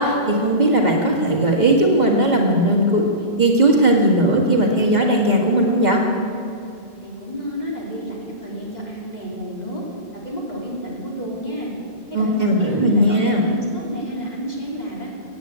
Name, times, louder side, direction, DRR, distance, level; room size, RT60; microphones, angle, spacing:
voice 1, 0.0-3.0 3.4-6.0 12.1-13.4, right 1 dB, 40° right, -1 dB, 1.9 m, -17 dB
voice 2, 7.0-9.8 10.1-11.7 12.1-15.1, equal, 40° left, -3 dB, 3.2 m, -30 dB
17.0 x 8.9 x 8.1 m, 2.5 s
omnidirectional pair, 1.1 m